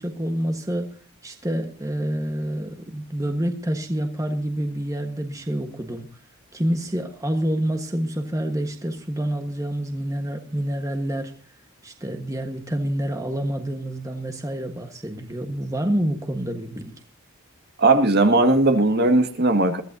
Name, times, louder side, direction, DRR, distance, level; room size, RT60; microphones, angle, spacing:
voice 1, 0.0-6.1 6.5-11.3 11.8-16.9, right 1 dB, 15° right, 5 dB, 1.4 m, -27 dB
voice 2, 17.8-19.8, right 2 dB, 45° right, 6 dB, 1.9 m, -18 dB
22.5 x 14.5 x 2.7 m, 0.37 s
head